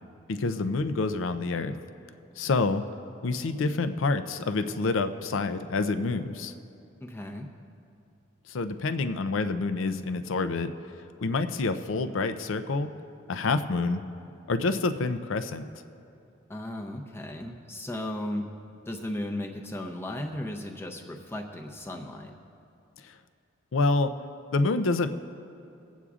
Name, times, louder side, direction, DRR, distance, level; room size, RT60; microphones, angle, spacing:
voice 1, 0.3-1.7 2.4-2.8 3.2-6.5 8.5-10.7 11.2-12.9 13.3-14.0 14.5-15.6 23.7-24.1 24.5-25.1, left 3 dB, 70° left, 9 dB, 0.5 m, -27 dB
voice 2, 7.0-7.5 16.5-18.5 18.9-22.3, left 1 dB, 10° left, 2 dB, 0.6 m, -35 dB
22.5 x 8.1 x 2.4 m, 2.6 s
head